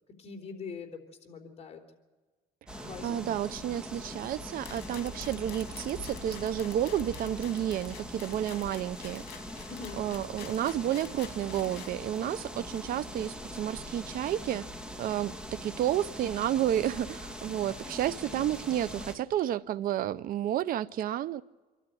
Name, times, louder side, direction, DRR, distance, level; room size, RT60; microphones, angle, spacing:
voice 1, 0.2-1.8 2.8-3.3 9.7-10.0 18.3-18.4 19.4-19.5, left 5 dB, 40° left, 3.6 m, -43 dB
sound 1, 2.7-19.2, equal, 5° right, 2.1 m, -42 dB
voice 2, 2.7-9.2 10.0-14.7 15.0-21.4, right 11 dB, 60° right, 0.6 m, -31 dB
sound 2, 4.6-11.9, left 11 dB, 75° left, 2.0 m, -49 dB
26.0 x 12.5 x 9.2 m
cardioid pair, 110°, 17 cm